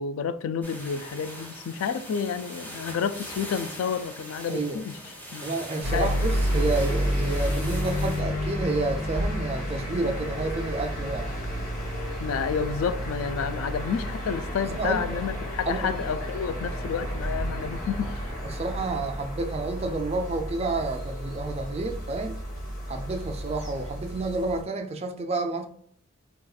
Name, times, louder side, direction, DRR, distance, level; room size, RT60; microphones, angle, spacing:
voice 1, 0.0-5.0 5.3-5.5 5.9-6.1 12.2-18.1, left 6 dB, 85° left, 0.3 m, -30 dB
sound 1, 0.6-8.2, equal, 10° left, 0.6 m, -41 dB
voice 2, 5.4-11.3 14.8-15.0 15.7-15.9 18.5-22.4 22.9-25.7, right 2 dB, 30° right, 0.4 m, -30 dB
sound 2, 5.8-24.6, equal, 40° left, 1.5 m, -31 dB
4.0 x 2.4 x 2.3 m
head